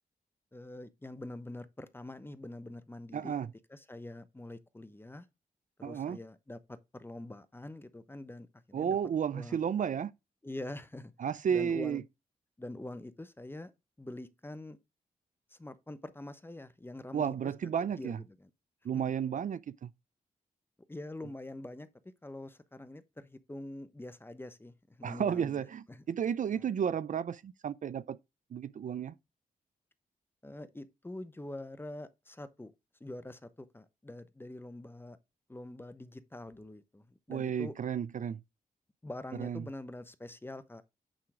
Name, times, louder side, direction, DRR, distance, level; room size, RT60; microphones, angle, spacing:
voice 1, 0.5-3.3 3.7-5.2 5.8-9.0 9.3-9.6 10.4-11.1 11.5-12.0 12.6-13.7 14.0-14.8 15.5-17.5 18.0-18.5 18.9-19.0 20.9-21.9 22.2-25.6 25.9-26.0 26.5-26.7 30.4-32.7 33.0-35.2 35.5-37.7 39.0-40.8, left 1 dB, 15° left, 0.9 m, -45 dB
voice 2, 3.1-3.5 5.8-6.2 8.7-10.1 11.2-12.0 17.1-18.2 18.8-19.9 25.0-28.2 28.5-29.1 37.3-38.4 39.4-39.7, right 8 dB, 60° right, 0.4 m, -32 dB
8.9 x 3.7 x 4.8 m
cardioid pair, 75°, 15 cm